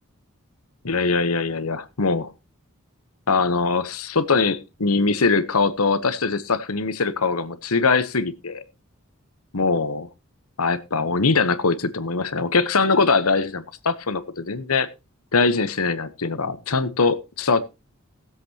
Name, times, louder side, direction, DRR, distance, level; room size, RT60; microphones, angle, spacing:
voice 1, 0.8-2.3 3.3-8.6 9.5-10.1 10.6-14.9 15.3-17.6, left 4 dB, 85° left, 1.1 m, -22 dB
19.5 x 7.7 x 2.9 m
head